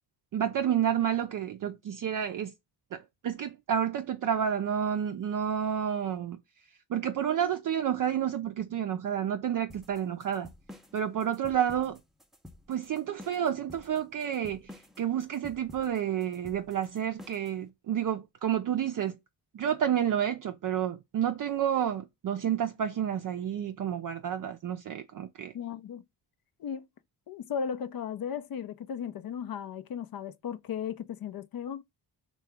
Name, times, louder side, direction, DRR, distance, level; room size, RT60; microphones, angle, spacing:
voice 1, 0.3-2.5 2.9-6.4 6.9-10.5 10.9-12.0 12.7-14.7 15.0-19.2 19.5-25.5, right 9 dB, 50° right, 0.5 m, -30 dB
sound 1, 9.7-17.6, left 1 dB, ahead, 0.5 m, -50 dB
voice 2, 25.5-26.0 26.6-26.9 27.3-31.8, left 7 dB, 55° left, 0.5 m, -36 dB
2.8 x 2.3 x 3.3 m
cardioid pair, 60°, 44 cm